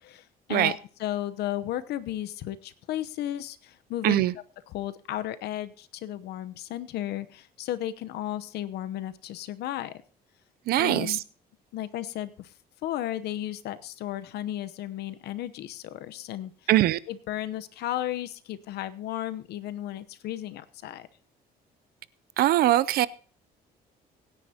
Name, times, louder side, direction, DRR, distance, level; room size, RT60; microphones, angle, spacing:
voice 1, 0.0-4.2 4.7-9.9 10.8-11.2 11.7-12.5 12.8-16.5 17.1-21.1, left 13 dB, 75° left, 13 dB, 0.9 m, -34 dB
voice 2, 4.0-4.3 10.7-11.2 16.7-17.0 22.4-23.1, right 14 dB, 65° right, 18 dB, 0.5 m, -22 dB
24.5 x 9.9 x 2.9 m, 0.41 s
cardioid pair, 110°, 17 cm